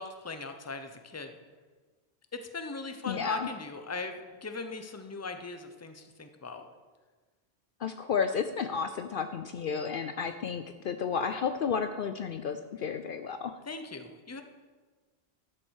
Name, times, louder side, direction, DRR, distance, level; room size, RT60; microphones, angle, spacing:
voice 1, 0.0-1.4 2.3-6.7 13.7-14.4, left 3 dB, 15° left, 7 dB, 0.7 m, -39 dB
voice 2, 3.0-3.5 7.8-13.6, left 6 dB, 60° left, 9 dB, 0.7 m, -32 dB
12.5 x 7.5 x 6.4 m, 1.4 s
omnidirectional pair, 1.1 m